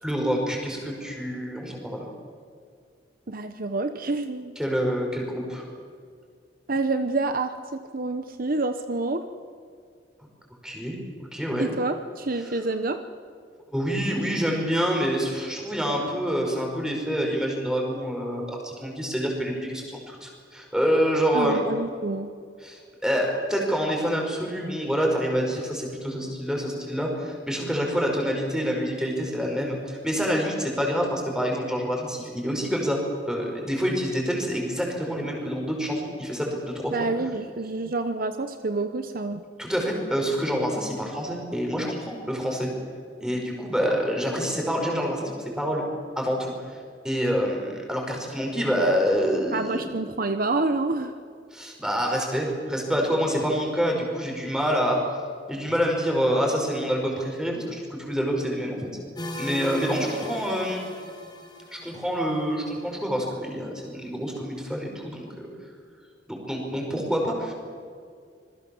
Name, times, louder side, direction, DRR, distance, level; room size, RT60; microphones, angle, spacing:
voice 1, 0.0-2.1 4.6-5.6 10.6-11.7 12.4-12.5 13.7-21.6 22.6-37.0 39.6-42.7 43.2-45.8 46.2-46.8 47.0-49.9 51.5-55.0 55.5-58.9 59.4-60.8 61.7-65.5 66.3-67.5, equal, 5° right, 0 dB, 5.4 m, -27 dB
voice 2, 3.3-4.6 6.7-9.2 11.6-13.0 21.3-22.3 36.9-39.4 49.5-51.1, right 3 dB, 50° right, 9 dB, 1.0 m, -28 dB
sound 1, 59.2-62.9, equal, 25° left, 4.3 m, -38 dB
26.5 x 21.5 x 7.2 m, 2.2 s
head